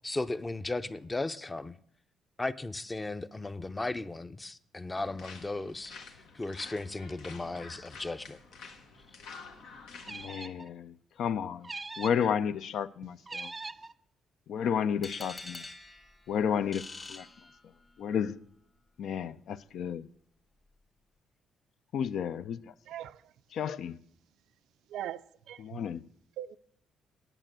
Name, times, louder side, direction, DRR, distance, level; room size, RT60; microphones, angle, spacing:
voice 1, 0.0-1.7 2.4-6.1 6.3-8.4, left 2 dB, 20° left, 0.6 m, -36 dB
sound 1, 4.9-10.3, left 4 dB, 90° left, 1.4 m, -49 dB
sound 2, 10.0-10.7 11.6-12.3 13.3-13.9, right 3 dB, 25° right, 0.4 m, -41 dB
voice 2, 10.1-11.7 12.0-13.5 14.5-15.6 16.3-17.3 18.0-18.4 19.0-20.1 21.9-22.6 23.5-24.0 25.6-26.0, left 8 dB, 70° left, 0.4 m, -32 dB
sound 3, 15.0-18.1, left 3 dB, 35° left, 1.4 m, -46 dB
voice 3, 22.9-23.3 23.6-23.8 24.9-25.8 26.4-26.6, right 11 dB, 85° right, 0.4 m, -41 dB
9.0 x 9.0 x 7.5 m
cardioid pair, 90°, 0 cm